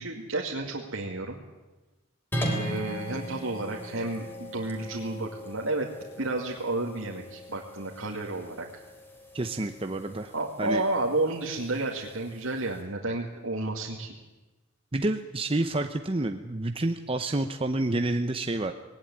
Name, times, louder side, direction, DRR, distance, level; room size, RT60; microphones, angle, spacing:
voice 1, 0.0-1.4 2.4-5.9 6.2-8.7 10.3-14.2, right 2 dB, 70° right, -1 dB, 2.2 m, -31 dB
sound 1, 2.3-12.8, equal, 10° left, 4.0 m, -39 dB
voice 2, 9.3-10.3 10.6-10.8 14.9-18.7, right 2 dB, 25° right, 6 dB, 0.8 m, -29 dB
19.5 x 18.5 x 10.0 m, 1.1 s
head